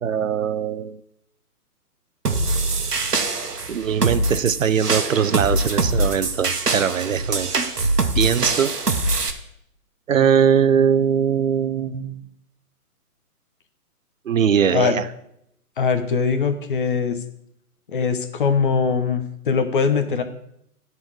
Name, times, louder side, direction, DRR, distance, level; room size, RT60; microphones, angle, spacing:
voice 1, 0.0-1.0 3.7-7.5 8.2-8.7 10.1-12.3 14.3-15.1, right 7 dB, 60° right, 13 dB, 0.6 m, -21 dB
sound 1, 2.3-9.3, right 2 dB, 85° right, 1.1 m, -23 dB
voice 2, 15.8-17.2 17.9-20.2, left 5 dB, 35° left, 7 dB, 0.8 m, -21 dB
10.0 x 4.1 x 6.2 m, 0.75 s
figure-of-eight pair, 135°, 46 cm